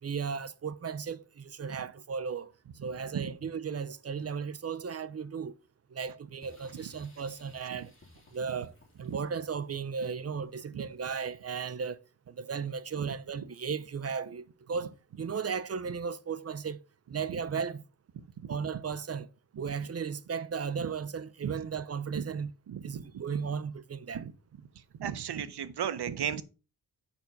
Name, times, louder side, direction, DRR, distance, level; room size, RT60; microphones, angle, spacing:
voice 1, 0.0-2.5 2.8-5.5 5.9-7.9 8.3-8.7 9.0-12.0 12.3-16.8 17.1-17.9 18.5-19.3 19.6-22.5 22.8-24.3, right 6 dB, 40° right, 0.6 m, -35 dB
sound 1, 6.4-11.6, left 2 dB, 30° left, 3.3 m, -59 dB
voice 2, 22.7-23.0 24.1-24.3 25.0-26.4, right 9 dB, 90° right, 0.8 m, -35 dB
7.1 x 5.9 x 5.3 m
wide cardioid pair, 120°, 38 cm